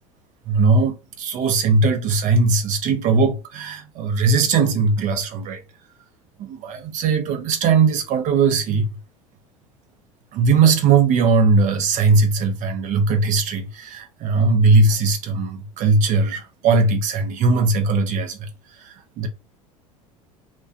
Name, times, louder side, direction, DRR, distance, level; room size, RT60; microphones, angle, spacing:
voice 1, 0.5-5.6 6.4-8.9 10.3-18.5 18.8-19.3, right 4 dB, 45° right, 0.6 m, -19 dB
2.4 x 2.2 x 2.4 m
figure-of-eight pair, 75°, 19 cm